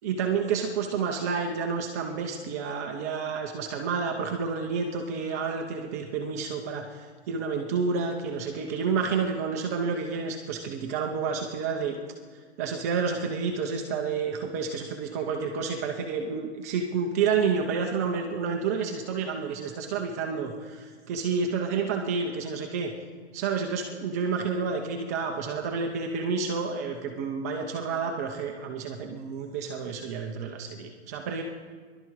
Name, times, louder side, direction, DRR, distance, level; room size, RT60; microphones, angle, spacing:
voice 1, 0.0-12.0 12.6-22.9 23.3-31.4, right 5 dB, 15° right, 2 dB, 0.5 m, -30 dB
21.5 x 12.0 x 4.6 m, 1.5 s
hypercardioid pair, 165°, 33 cm